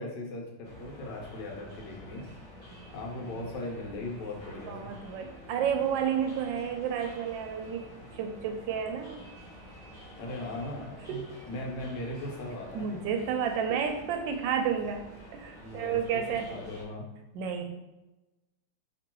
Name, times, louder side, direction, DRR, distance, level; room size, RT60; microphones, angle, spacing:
voice 1, 0.0-2.3 2.9-4.9 10.2-11.2 11.5-13.0 15.6-16.2 16.5-17.0, left 1 dB, 65° left, -1 dB, 1.4 m, -38 dB
sound 1, 0.6-16.8, equal, 25° right, 1.3 m, -49 dB
voice 2, 4.7-7.8 8.2-9.2 11.1-11.2 12.7-15.0 15.3-16.5 17.3-17.7, right 7 dB, 75° right, 5 dB, 1.2 m, -31 dB
3.0 x 2.9 x 4.4 m, 1.0 s
omnidirectional pair, 2.1 m